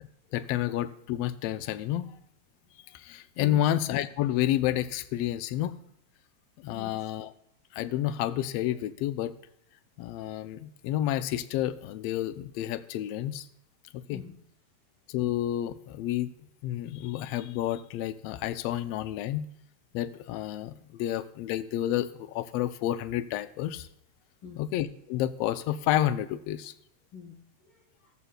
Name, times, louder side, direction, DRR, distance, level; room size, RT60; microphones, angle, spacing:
voice 1, 0.3-2.1 2.9-5.7 6.6-7.3 7.7-9.3 10.0-13.5 13.9-14.2 15.1-16.3 16.6-19.4 19.9-20.7 21.0-23.9 24.6-26.7, left 12 dB, 75° left, 13 dB, 1.5 m, -30 dB
voice 2, 3.3-3.7 6.7-7.0 14.1-14.3 24.4-24.6 27.1-28.1, left 5 dB, 60° left, 3 dB, 1.5 m, -46 dB
14.5 x 8.3 x 2.2 m, 0.76 s
omnidirectional pair, 3.3 m